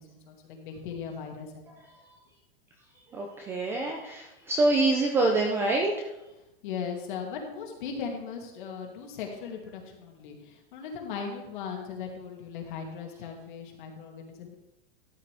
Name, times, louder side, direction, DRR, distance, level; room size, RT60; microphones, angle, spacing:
voice 1, 0.0-1.8 6.6-14.5, left 6 dB, 55° left, 2 dB, 2.3 m, -38 dB
voice 2, 3.1-5.9, right 2 dB, 10° right, 1 dB, 0.3 m, -25 dB
12.5 x 8.5 x 3.4 m, 0.96 s
supercardioid pair, 165°, 29 cm